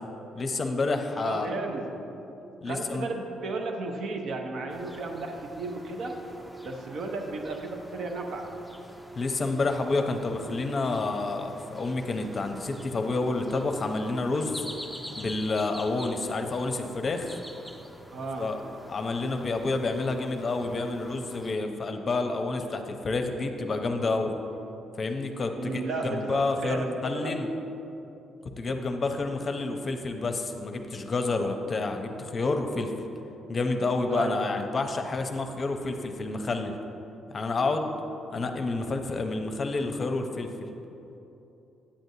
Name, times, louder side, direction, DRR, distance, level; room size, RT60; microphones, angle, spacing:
voice 1, 0.4-1.6 2.6-3.1 9.2-14.6 15.2-17.4 18.4-18.6 18.9-24.3 25.0-27.5 28.6-32.9 33.5-36.7 37.3-37.9 38.3-40.7, left 3 dB, 40° left, 5 dB, 0.6 m, -29 dB
voice 2, 1.2-1.9 2.7-6.2 6.6-8.5 18.1-18.5 25.6-27.4 34.1-34.5, right 3 dB, 65° right, 3 dB, 0.8 m, -34 dB
sound 1, 4.7-21.5, equal, ahead, 0.5 m, -47 dB
8.5 x 7.6 x 2.7 m, 2.9 s
cardioid pair, 90°, 0 cm